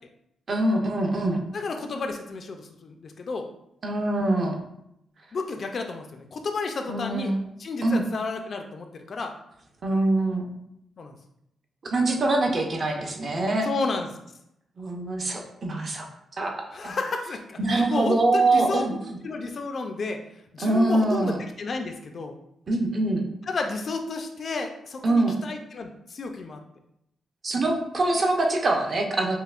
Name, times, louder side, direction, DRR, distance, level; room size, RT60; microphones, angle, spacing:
voice 1, 0.5-1.4 3.8-4.6 6.9-7.4 7.8-8.0 9.8-10.4 11.8-13.7 14.8-16.1 16.4-17.0 17.6-19.2 20.6-21.4 22.7-23.2 25.0-25.3 27.4-29.4, right 2 dB, 40° right, 2 dB, 0.6 m, -24 dB
voice 2, 1.5-3.5 5.3-7.3 7.6-9.3 11.0-11.2 13.6-14.1 16.7-18.8 19.2-20.2 20.5-22.4 23.5-26.6, left 3 dB, 45° left, 4 dB, 0.3 m, -32 dB
5.4 x 2.1 x 2.4 m, 0.80 s
cardioid pair, 125°, 0 cm